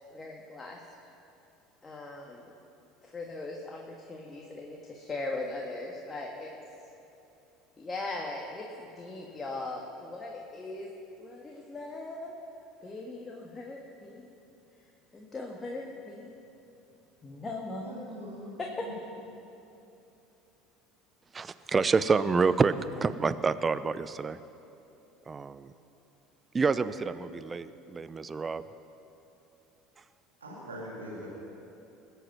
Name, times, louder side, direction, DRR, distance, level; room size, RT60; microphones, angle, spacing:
voice 1, 0.1-0.8 1.8-2.5 3.0-6.5 7.8-10.9 11.2-12.3 12.8-14.3 15.1-16.3 17.2-18.0 18.8-18.9, left 2 dB, 25° left, -1 dB, 1.7 m, -39 dB
voice 2, 17.8-18.6 18.9-19.0 30.4-31.3, equal, 90° right, -5 dB, 2.6 m, -42 dB
voice 3, 21.3-24.4 25.3-25.7 26.5-28.6, right 4 dB, 25° right, 14 dB, 0.6 m, -28 dB
20.5 x 8.2 x 5.9 m, 2.9 s
hypercardioid pair, 70°, 0 cm